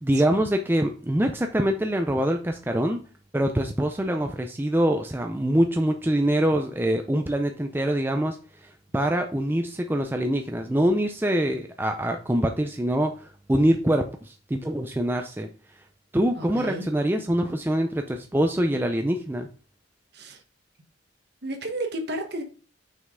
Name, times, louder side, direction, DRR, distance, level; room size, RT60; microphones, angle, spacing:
voice 1, 0.0-3.0 3.3-15.5 16.1-19.5, right 1 dB, 10° right, 0.4 m, -24 dB
voice 2, 16.4-16.9 20.1-20.4 21.4-22.4, right 1 dB, 55° right, 1.3 m, -32 dB
6.3 x 5.7 x 3.7 m
head